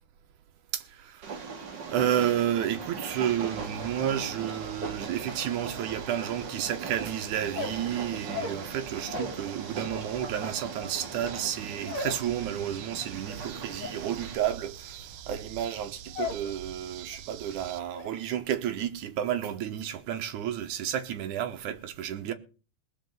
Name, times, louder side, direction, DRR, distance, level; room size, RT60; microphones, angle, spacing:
voice 1, 0.7-1.5 1.9-22.3, right 10 dB, 65° right, 2.3 m, -31 dB
Train, 1.2-14.4, right 5 dB, 40° right, 1.8 m, -39 dB
sound 1, 3.1-17.8, right 10 dB, 85° right, 2.7 m, -46 dB
sound 2, 7.4-9.4 9.7-16.5 16.8-17.3 17.6-18.1, left 4 dB, 45° left, 4.1 m, -39 dB
19.0 x 6.6 x 8.0 m
omnidirectional pair, 4.2 m